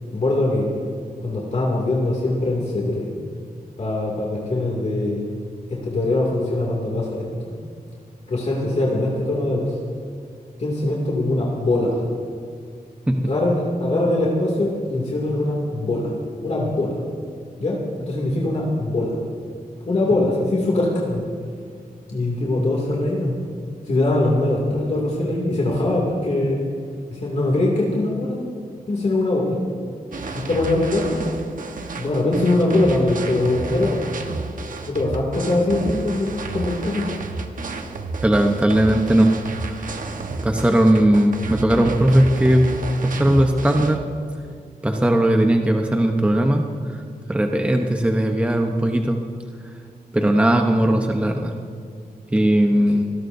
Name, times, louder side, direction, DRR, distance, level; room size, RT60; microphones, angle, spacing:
voice 1, 0.1-0.7 1.2-3.1 3.8-5.2 5.7-7.3 8.3-9.8 10.6-12.0 13.2-16.1 16.4-17.0 17.6-19.2 19.9-21.2 22.1-23.3 23.8-26.6 27.1-28.4 28.9-29.6 30.3-31.2 32.0-34.1 34.9-37.1 52.9-53.0, left 2 dB, 45° left, -4 dB, 2.4 m, -22 dB
sound 1, 30.1-44.0, right 3 dB, 60° right, 1.2 m, -31 dB
voice 2, 38.2-39.4 40.4-42.7 43.0-44.0 44.8-47.0 47.3-49.2 50.1-51.5 52.3-53.0, right 1 dB, 10° right, 3 dB, 0.8 m, -18 dB
25.5 x 18.5 x 2.7 m, 2.2 s
wide cardioid pair, 180°, 15 cm